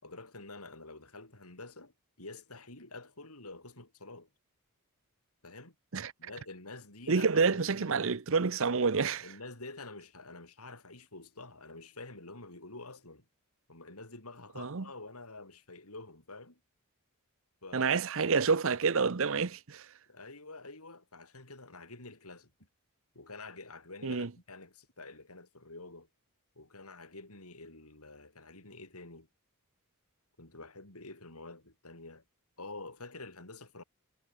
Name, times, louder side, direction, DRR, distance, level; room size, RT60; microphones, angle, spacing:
voice 1, 0.0-1.9 2.2-4.3 5.4-5.7 6.2-7.9 8.9-13.2 13.7-16.6 17.6-18.0 20.1-22.5 23.2-26.1 26.6-29.3 30.4-32.2 32.6-33.8, left 3 dB, 85° left, 7.1 m, -48 dB
voice 2, 7.1-9.2 14.6-14.8 17.7-19.9 24.0-24.3, right 5 dB, 65° right, 0.8 m, -28 dB
head